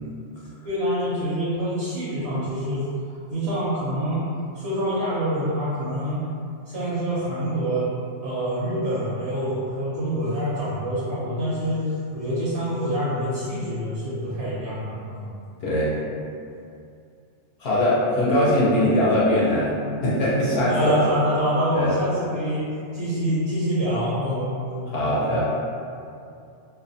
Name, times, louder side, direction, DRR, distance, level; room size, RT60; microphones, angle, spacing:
voice 1, 0.6-4.2 4.5-6.2 6.7-7.8 8.2-15.3 20.7-22.6 22.9-25.3, equal, 75° right, -9 dB, 0.8 m, -26 dB
voice 2, 15.6-15.9 17.6-19.8 20.0-20.9 21.7-22.0 24.9-25.7, left 1 dB, 65° left, -8 dB, 0.8 m, -21 dB
2.4 x 2.1 x 2.6 m, 2.5 s
omnidirectional pair, 1.1 m